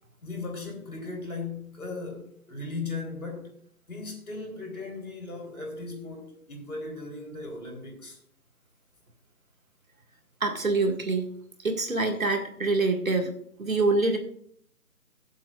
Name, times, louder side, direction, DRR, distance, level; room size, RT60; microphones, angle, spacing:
voice 1, 0.2-3.5 3.9-8.2, left 3 dB, 65° left, 3.9 m, -37 dB
voice 2, 10.4-11.3 11.6-13.3 13.6-14.2, right 3 dB, 60° right, 2.0 m, -25 dB
20.5 x 7.4 x 2.5 m
figure-of-eight pair, 175°, 47 cm